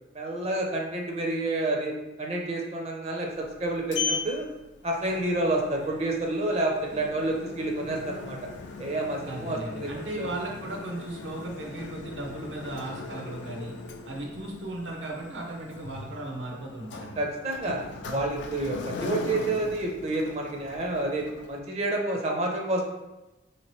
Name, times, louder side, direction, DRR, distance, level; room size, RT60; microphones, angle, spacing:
voice 1, 0.1-4.5 4.8-8.4 8.8-10.3 17.2-22.8, right 2 dB, 35° right, 1 dB, 0.4 m, -29 dB
Sliding door, 3.3-21.6, left 4 dB, 75° left, 0.3 m, -39 dB
voice 2, 9.2-13.8 14.1-17.2, right 2 dB, 85° right, 0 dB, 0.7 m, -36 dB
2.9 x 2.9 x 3.0 m, 1.1 s
head